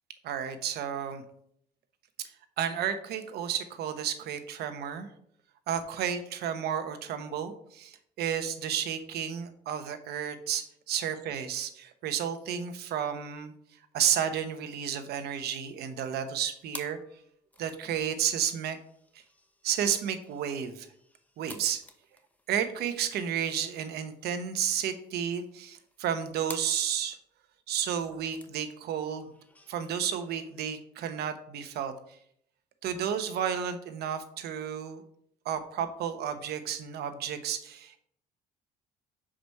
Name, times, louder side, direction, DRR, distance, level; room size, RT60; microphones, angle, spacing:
voice 1, 0.2-1.2 2.6-5.1 5.7-13.5 13.9-17.0 17.6-18.8 19.6-20.9 21.4-21.8 22.5-27.2 27.7-29.3 29.7-31.9 32.8-35.0 35.4-38.0, right 8 dB, 70° right, 9 dB, 1.0 m, -32 dB
sound 1, 15.6-30.8, left 1 dB, 10° left, 0.9 m, -53 dB
6.0 x 5.0 x 5.4 m, 0.68 s
cardioid pair, 110°, 17 cm